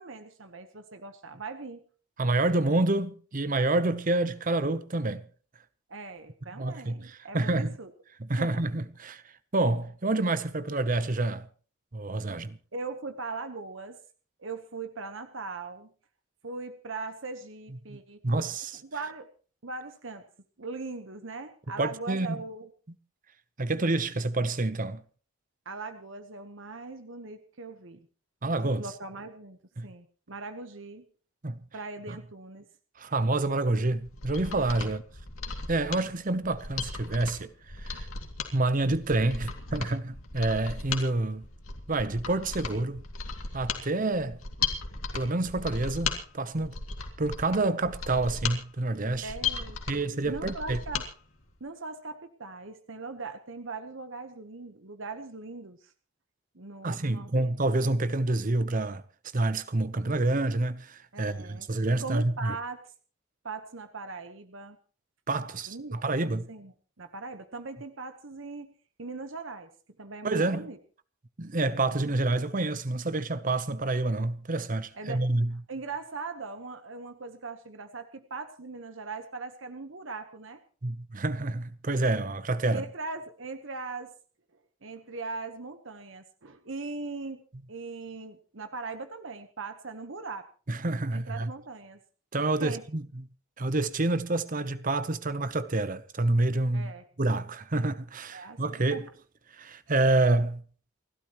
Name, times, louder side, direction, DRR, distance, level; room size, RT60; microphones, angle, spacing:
voice 1, 0.0-1.8 5.9-7.9 8.4-8.5 12.7-14.0 14.4-15.9 16.4-18.2 18.9-19.3 19.6-20.2 20.6-22.7 25.6-28.1 28.8-31.0 31.7-32.7 34.8-34.9 49.2-51.0 51.6-55.9 56.5-57.5 61.1-61.7 62.0-62.8 63.4-64.8 65.7-66.0 66.5-66.7 67.0-68.7 69.0-69.7 70.0-70.8 74.9-75.2 75.7-80.6 82.7-84.1 84.8-87.4 87.7-90.5 91.1-92.0 92.6-92.8 96.7-97.0 98.3-99.0, right 3 dB, 65° right, 1.2 m, -40 dB
voice 2, 2.2-5.3 6.6-7.7 8.2-9.2 9.5-11.5 11.9-12.6 17.9-18.8 21.8-22.4 23.6-25.0 28.4-28.9 29.8-29.9 31.4-31.6 32.1-32.2 33.0-35.0 35.7-37.5 37.8-38.1 38.5-41.5 41.9-43.0 43.5-44.4 45.1-46.8 47.2-49.3 49.9-50.8 56.8-59.0 59.3-62.6 65.3-66.5 70.2-70.7 71.4-75.6 80.8-82.9 90.7-91.5 92.3-93.3 93.6-96.9 97.2-99.1 99.6-100.6, right 2 dB, 40° right, 0.9 m, -28 dB
Mechanisms, 34.0-51.1 51.4-51.5, left 5 dB, 90° left, 2.6 m, -36 dB
29.0 x 12.5 x 3.1 m
head